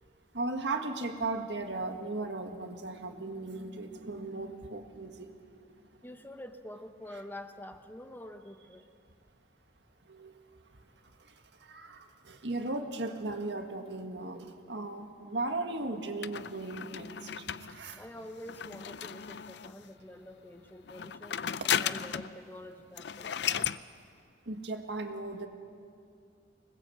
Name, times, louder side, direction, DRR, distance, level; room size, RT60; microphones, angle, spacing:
voice 1, 0.3-5.3 10.1-10.4 10.7-10.8 11.2-18.0 24.5-25.5, right 2 dB, 80° right, 5 dB, 1.9 m, -37 dB
voice 2, 6.0-8.9 18.0-21.4 21.8-23.7, left 1 dB, 10° left, 7 dB, 1.0 m, -47 dB
sound 1, 16.2-19.9 20.8-22.4 22.7-22.8 23.0-23.8, left 9 dB, 70° left, 0.5 m, -35 dB
25.5 x 20.5 x 7.9 m, 2.3 s
head